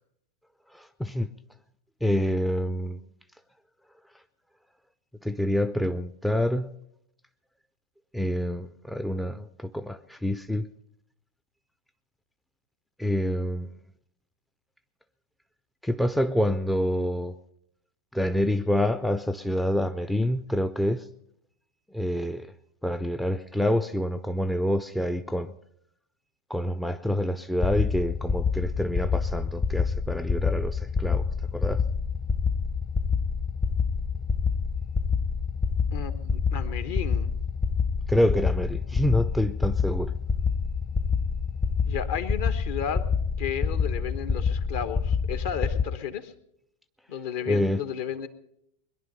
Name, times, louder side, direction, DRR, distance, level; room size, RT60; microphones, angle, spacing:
voice 1, 0.7-1.3 2.0-3.0 5.2-6.7 8.1-10.7 13.0-13.7 15.8-17.3 18.1-21.0 21.9-22.5 22.8-25.5 26.5-31.2 31.5-31.8 38.1-40.1 47.5-47.8, left 1 dB, ahead, 11 dB, 0.5 m, -27 dB
sound 1, 27.6-45.8, left 5 dB, 25° left, 0.9 m, -27 dB
voice 2, 35.9-37.3 41.9-43.0 43.4-46.3 47.1-48.3, left 8 dB, 50° left, 12 dB, 1.1 m, -33 dB
21.5 x 11.0 x 5.4 m, 0.74 s
figure-of-eight pair, 90°, 0 cm